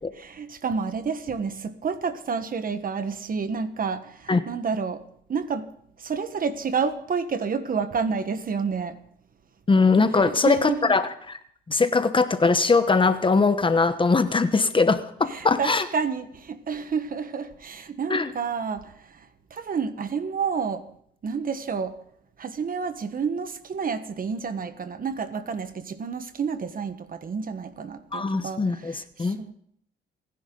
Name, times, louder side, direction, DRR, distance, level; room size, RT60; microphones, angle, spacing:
voice 1, 0.2-5.0 5.3-5.7 6.0-9.0 10.2-11.0 15.3-20.9 21.2-22.0 22.4-29.5, right 5 dB, 45° right, 1.4 m, -30 dB
voice 2, 9.7-11.1 11.7-15.9 18.1-18.3 28.1-29.4, left 4 dB, 25° left, 1.1 m, -21 dB
28.0 x 10.5 x 3.9 m
cardioid pair, 90°, 20 cm